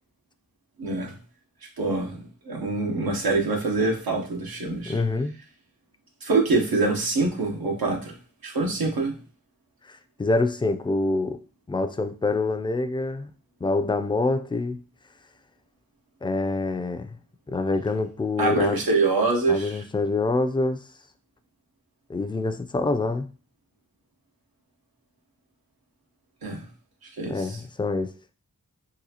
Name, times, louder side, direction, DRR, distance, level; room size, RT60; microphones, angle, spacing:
voice 1, 0.8-1.1 1.8-2.2 2.4-5.0 6.2-8.1 8.4-9.2 18.4-19.8 26.4-26.6 27.2-27.6, right 3 dB, 90° right, 0.9 m, -25 dB
voice 2, 4.9-5.3 9.9-11.4 11.7-13.3 13.6-14.8 16.2-17.2 17.5-18.8 19.5-20.8 22.1-23.3 27.3-28.1, left 3 dB, 15° left, 0.3 m, -26 dB
3.9 x 2.4 x 2.8 m
cardioid pair, 40°, 35 cm